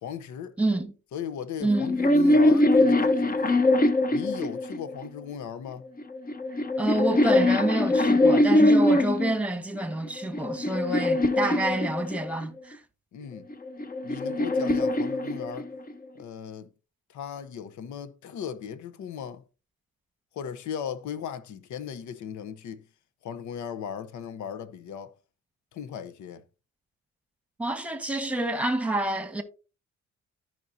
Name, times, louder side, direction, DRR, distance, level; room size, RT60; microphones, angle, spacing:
voice 1, 0.0-0.6 1.1-3.6 4.1-5.9 13.1-13.5 14.0-15.7 16.1-16.7 17.1-19.4 20.3-22.9 23.2-25.1 25.7-26.4, left 8 dB, 70° left, 0.9 m, -37 dB
voice 2, 0.6-0.9 1.6-2.0 6.8-12.8 27.6-29.4, right 1 dB, 5° right, 1.4 m, -28 dB
sound 1, 1.7-5.1 6.0-9.4 10.0-12.5 13.5-15.9, left 1 dB, 30° left, 0.9 m, -22 dB
14.0 x 5.4 x 2.7 m
cardioid pair, 90°, 30 cm